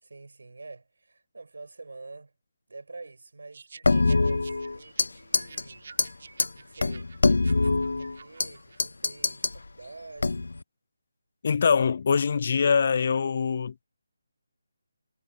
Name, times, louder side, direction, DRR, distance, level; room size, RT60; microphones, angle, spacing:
voice 1, 0.0-2.3 2.7-5.9 6.2-7.2 7.4-10.5, right 3 dB, 85° right, 5.7 m, -47 dB
sound 1, 3.5-8.8, right 5 dB, 50° right, 5.2 m, -50 dB
sound 2, 3.8-5.1 5.3-5.6 6.0-6.1 6.4-6.5 6.8-8.5 8.8-9.6 10.2-10.6, left 3 dB, 85° left, 0.5 m, -24 dB
voice 2, 11.4-13.7, left 6 dB, 35° left, 0.5 m, -23 dB
hypercardioid pair, 175°, 0 cm